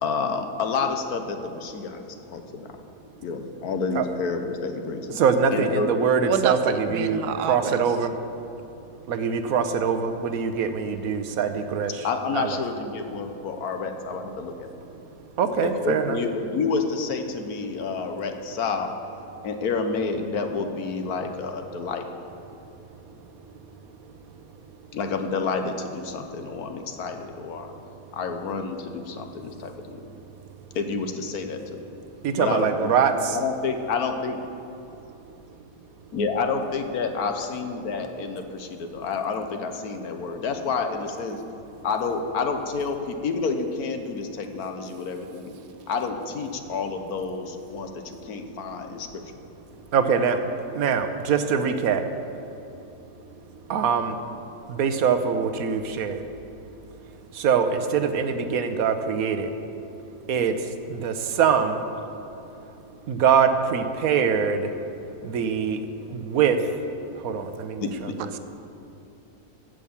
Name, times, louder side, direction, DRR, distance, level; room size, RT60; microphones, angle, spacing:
voice 1, 0.0-2.0 2.3-2.7 3.2-5.2 5.5-5.9 12.0-14.7 15.6-18.9 19.4-22.0 24.9-27.7 28.1-30.0 30.7-31.9 32.4-34.4 36.1-41.4 41.8-45.6 45.9-49.2 67.8-67.9, left 4 dB, 75° left, 6 dB, 1.4 m, -29 dB
voice 2, 5.1-8.1 9.1-12.1 12.3-12.6 15.4-16.2 32.2-33.4 49.9-50.4 50.7-52.1 53.7-54.2 54.7-56.2 57.3-59.5 60.3-61.8 63.1-64.7 65.2-65.8 66.1-66.6 67.1-67.9 68.2-68.4, right 6 dB, 70° right, 8 dB, 1.3 m, -23 dB
voice 3, 6.2-7.8, right 7 dB, 90° right, 10 dB, 1.3 m, -27 dB
15.5 x 6.4 x 7.1 m, 2.9 s
omnidirectional pair, 1.6 m